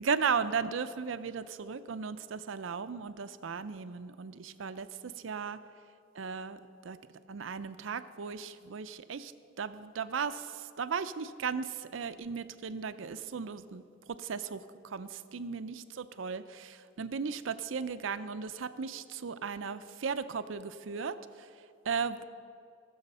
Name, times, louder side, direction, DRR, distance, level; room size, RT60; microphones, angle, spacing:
voice 1, 0.0-5.6 6.2-6.6 6.8-7.0 7.3-9.3 9.6-13.8 14.2-14.6 14.9-21.2 21.9-22.2, right 6 dB, 75° right, 13 dB, 0.5 m, -36 dB
18.0 x 7.1 x 5.5 m, 2.4 s
head